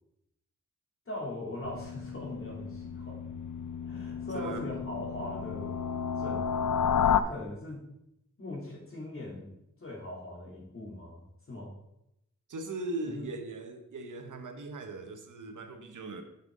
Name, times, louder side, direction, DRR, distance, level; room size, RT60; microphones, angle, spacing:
voice 1, 1.1-3.2 3.9-5.8 6.2-7.8 8.4-9.5 9.8-11.2 11.5-11.7 13.1-13.2, left 1 dB, 45° left, -4 dB, 3.0 m, -40 dB
sound 1, 1.6-7.2, left 7 dB, 80° left, 0.5 m, -32 dB
voice 2, 4.3-4.7 12.5-16.2, right 2 dB, 85° right, 6 dB, 1.0 m, -39 dB
7.4 x 7.0 x 3.8 m, 0.83 s
wide cardioid pair, 100°, 30 cm